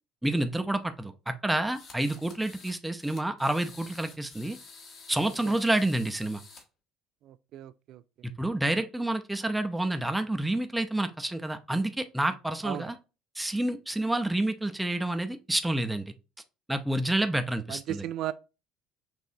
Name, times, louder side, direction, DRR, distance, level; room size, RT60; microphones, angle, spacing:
voice 1, 0.2-4.6 5.1-6.4 8.2-13.0 13.4-16.1 16.7-18.1, right 1 dB, 10° right, 0.7 m, -29 dB
sound 1, 1.7-2.7 3.0-6.6, left 4 dB, 55° left, 1.8 m, -50 dB
voice 2, 7.2-8.0 12.6-12.9 17.7-18.3, right 13 dB, 60° right, 0.3 m, -35 dB
6.2 x 2.6 x 2.6 m
hypercardioid pair, 65°, 0 cm